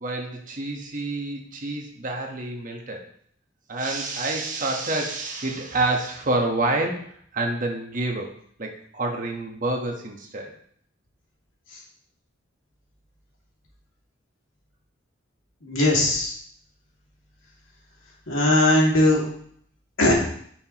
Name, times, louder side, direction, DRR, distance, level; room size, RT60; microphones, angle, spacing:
voice 1, 0.0-3.1 3.7-8.3 8.6-10.5, right 2 dB, 40° right, 2 dB, 1.2 m, -28 dB
voice 2, 15.6-16.3 18.3-19.2 20.0-20.1, left 1 dB, 85° left, -3 dB, 2.4 m, -19 dB
9.1 x 5.8 x 3.0 m, 0.62 s
head